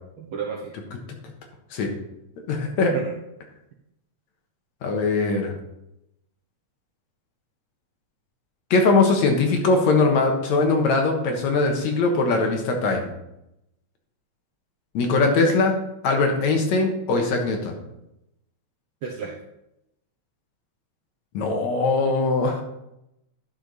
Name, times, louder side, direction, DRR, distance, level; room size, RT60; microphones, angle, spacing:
voice 1, 0.2-0.7 2.8-3.1 19.0-19.4, right 6 dB, 70° right, 0 dB, 1.3 m, -32 dB
voice 2, 2.5-2.9 4.8-5.5 8.7-13.1 14.9-15.7 16.0-17.8 21.3-22.6, left 3 dB, 75° left, 2 dB, 2.6 m, -21 dB
11.5 x 5.8 x 4.1 m, 0.85 s
omnidirectional pair, 3.3 m